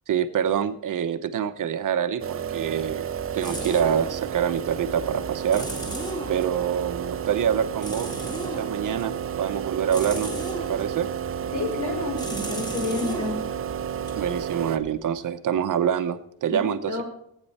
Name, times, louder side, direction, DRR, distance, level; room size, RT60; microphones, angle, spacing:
voice 1, 0.1-3.1 3.3-5.7 6.3-8.1 8.4-9.1 9.4-10.3 10.7-11.1 14.1-17.0, right 8 dB, 55° right, 10 dB, 0.9 m, -26 dB
sound 1, 2.2-14.8, right 8 dB, 35° right, 0.5 m, -32 dB
sound 2, 2.5-15.1, right 1 dB, 10° left, 2.1 m, -37 dB
voice 2, 11.5-13.4 16.5-17.0, left 3 dB, 55° left, 1 dB, 5.3 m, -29 dB
18.5 x 9.2 x 4.2 m, 0.69 s
wide cardioid pair, 180°, 36 cm